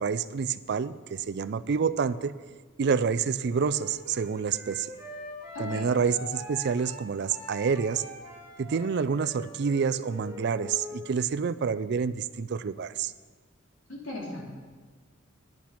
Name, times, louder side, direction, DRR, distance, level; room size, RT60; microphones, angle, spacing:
voice 1, 0.0-2.3 2.8-4.9 5.6-8.0 8.6-13.1, right 6 dB, 55° right, 14 dB, 0.4 m, -28 dB
Wind instrument woodwind instrument, 3.5-11.0, left 2 dB, 10° right, 3.6 m, -43 dB
voice 2, 5.5-5.9 13.9-14.4, left 2 dB, 65° left, -4 dB, 3.1 m, -37 dB
10.5 x 8.6 x 5.8 m, 1.5 s
head